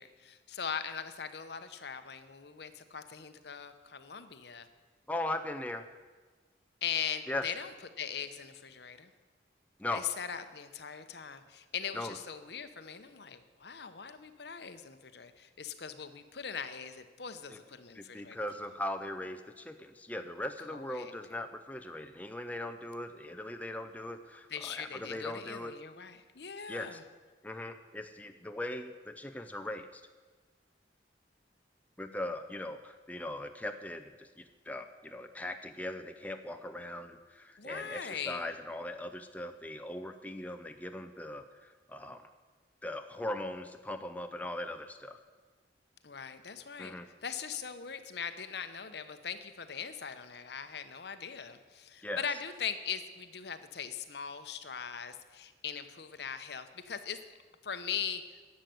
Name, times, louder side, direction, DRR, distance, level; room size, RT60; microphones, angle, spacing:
voice 1, 0.0-4.7 6.8-9.1 9.9-18.4 20.7-21.1 24.5-27.0 37.6-38.5 46.0-46.9 47.2-57.2 57.6-58.2, left 7 dB, 65° left, 10 dB, 0.9 m, -40 dB
voice 2, 5.1-5.9 7.3-7.4 9.8-10.1 11.9-12.2 17.5-17.6 17.9-25.8 26.7-27.0 27.4-30.0 32.0-42.2 42.8-45.2 46.8-47.1 52.0-52.2, left 1 dB, 10° left, 5 dB, 0.5 m, -39 dB
11.0 x 7.6 x 9.3 m, 1.4 s
head